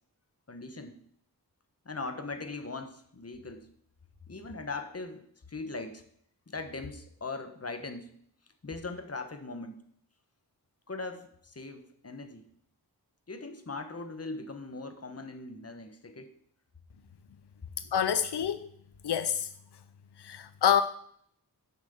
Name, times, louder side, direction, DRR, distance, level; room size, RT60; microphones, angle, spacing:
voice 1, 0.5-1.0 1.8-3.7 4.3-6.0 6.5-8.1 8.6-9.8 10.9-12.4 13.3-16.3, left 3 dB, 35° left, 1.3 m, -40 dB
voice 2, 17.9-18.7 19.0-19.5 20.2-20.8, left 9 dB, 85° left, 0.6 m, -27 dB
7.3 x 6.3 x 7.8 m
wide cardioid pair, 85°, 40 cm